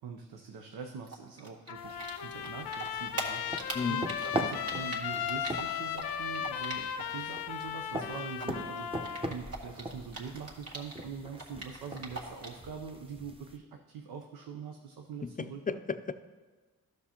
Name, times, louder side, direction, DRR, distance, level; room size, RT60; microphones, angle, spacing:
voice 1, 0.0-8.9 9.3-15.8, right 6 dB, 85° right, 3 dB, 0.7 m, -44 dB
Typing, 1.0-7.2 7.5-11.0 11.3-12.6, right 3 dB, 40° right, 1.9 m, -41 dB
Trumpet, 1.7-9.3, left 9 dB, 85° left, 0.6 m, -36 dB
sound 1, 1.8-13.6, right 1 dB, 15° right, 1.0 m, -42 dB
voice 2, 3.7-4.1 15.2-16.1, left 5 dB, 25° left, 11 dB, 0.5 m, -34 dB
12.5 x 6.3 x 2.9 m, 1.3 s
supercardioid pair, 45°, 36 cm